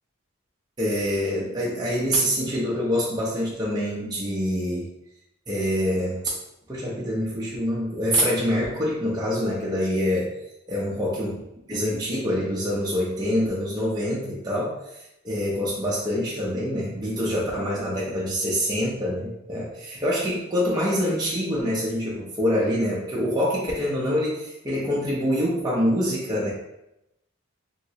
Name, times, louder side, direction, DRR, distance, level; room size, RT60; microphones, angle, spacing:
voice 1, 0.8-4.9 5.5-6.3 6.7-10.3 10.7-11.3 11.7-14.9 15.2-26.5, equal, 20° right, -6 dB, 0.5 m, -25 dB
3.0 x 2.9 x 2.7 m, 0.87 s
head